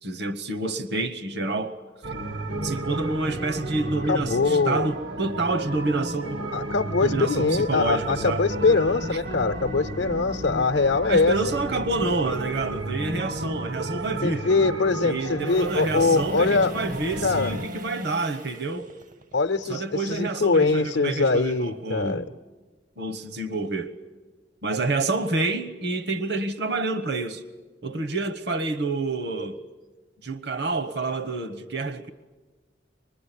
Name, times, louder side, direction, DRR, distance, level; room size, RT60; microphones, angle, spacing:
voice 1, 0.0-1.8 2.6-6.4 7.0-8.5 11.1-14.5 15.0-18.9 19.7-22.4 23.0-23.9 24.6-27.4 27.8-29.6 30.2-32.1, right 3 dB, 65° right, 1.1 m, -28 dB
sound 1, 2.0-17.7, right 1 dB, 85° right, 1.3 m, -33 dB
voice 2, 4.1-4.9 6.5-11.4 14.2-16.8 17.2-17.5 19.3-22.2, left 3 dB, 90° left, 0.7 m, -23 dB
sound 2, 15.4-21.6 28.1-28.2, right 2 dB, 45° right, 0.7 m, -41 dB
25.0 x 21.0 x 10.0 m
head